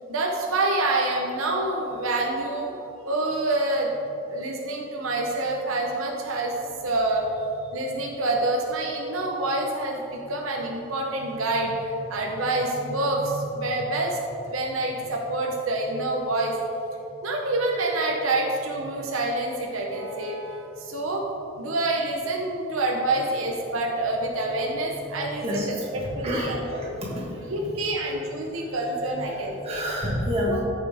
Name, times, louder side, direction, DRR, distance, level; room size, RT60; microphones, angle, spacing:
voice 1, 0.1-2.7 3.0-3.9 4.3-6.6 6.8-16.5 17.2-21.2 21.6-26.9 27.5-29.8 30.4-30.6, right 2 dB, 90° right, 0 dB, 1.0 m, -27 dB
voice 2, 25.4-27.7 28.0-28.1 28.6-28.7 29.3-30.6, equal, 30° right, -5 dB, 2.0 m, -30 dB
14.5 x 5.9 x 3.6 m, 2.9 s
head